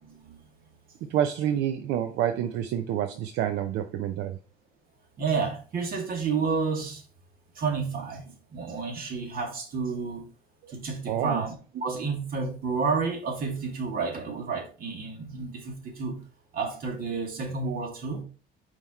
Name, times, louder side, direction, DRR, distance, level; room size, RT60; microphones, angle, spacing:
voice 1, 0.0-0.4 5.2-7.0 7.6-10.3 10.7-16.2 16.5-18.2, right 5 dB, 60° right, 2.1 m, -30 dB
voice 2, 1.0-4.4 10.6-10.7 11.1-11.4, right 10 dB, 85° right, 0.6 m, -28 dB
5.6 x 4.7 x 4.3 m
cardioid pair, 110°, 17 cm